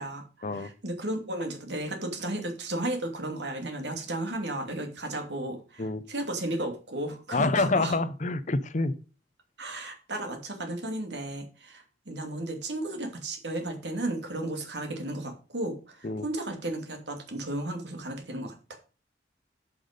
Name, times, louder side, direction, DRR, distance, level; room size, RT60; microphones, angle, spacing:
voice 1, 0.0-8.0 9.6-18.8, right 1 dB, 75° right, 4 dB, 2.7 m, -34 dB
voice 2, 7.3-8.9 16.0-16.3, left 3 dB, 45° left, 14 dB, 0.7 m, -27 dB
10.5 x 5.9 x 5.3 m, 0.36 s
head